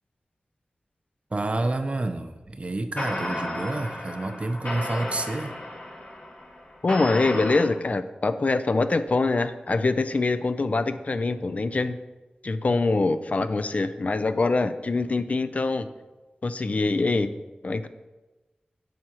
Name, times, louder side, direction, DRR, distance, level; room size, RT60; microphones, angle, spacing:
voice 1, 1.3-5.6, right 2 dB, 40° right, 8 dB, 0.6 m, -29 dB
sound 1, 2.4-2.6 3.0-7.6, left 1 dB, 75° left, 2.3 m, -33 dB
voice 2, 6.8-12.0 12.4-15.9 16.4-17.3 17.6-17.9, left 3 dB, 50° left, 11 dB, 0.4 m, -24 dB
9.1 x 6.2 x 2.9 m, 1.1 s
wide cardioid pair, 70°, 3 cm